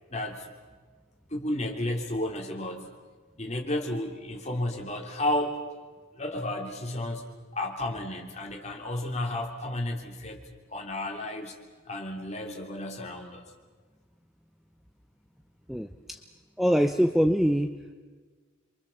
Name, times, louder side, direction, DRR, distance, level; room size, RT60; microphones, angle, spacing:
voice 1, 0.1-0.4 1.3-2.8 3.4-5.6 6.1-7.2 7.5-10.4 10.7-11.5 11.9-13.4, left 1 dB, 30° left, 1 dB, 3.2 m, -32 dB
voice 2, 15.7-16.2 16.6-17.7, equal, ahead, 7 dB, 0.7 m, -24 dB
27.5 x 24.0 x 7.2 m, 1.4 s
head